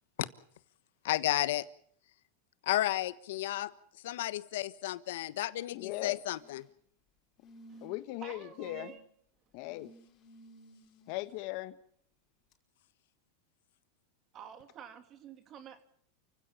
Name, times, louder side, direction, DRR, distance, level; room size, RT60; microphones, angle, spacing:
voice 1, 1.0-1.6 2.6-3.7 4.0-6.6, left 15 dB, 75° left, 15 dB, 1.2 m, -32 dB
voice 2, 5.7-6.2 7.8-8.9 9.5-9.9 11.1-11.8, left 18 dB, 55° left, 12 dB, 1.2 m, -38 dB
sound 1, 6.1-6.7 7.4-8.1 8.5-9.0 9.7-11.3 12.5-12.6, right 1 dB, 35° left, 5.3 m, -56 dB
voice 3, 8.2-9.0 14.3-15.8, right 9 dB, 35° right, 8 dB, 2.8 m, -49 dB
29.0 x 16.5 x 7.2 m, 0.64 s
supercardioid pair, 125°, 0 cm